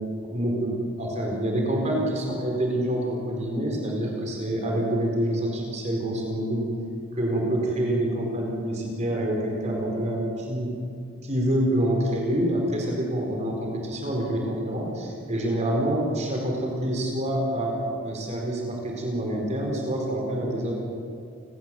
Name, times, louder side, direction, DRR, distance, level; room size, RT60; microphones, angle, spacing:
voice 1, 0.2-6.7 7.2-10.7 11.2-20.7, right 1 dB, 30° right, 0 dB, 4.6 m, -27 dB
30.0 x 18.0 x 7.8 m, 2.4 s
head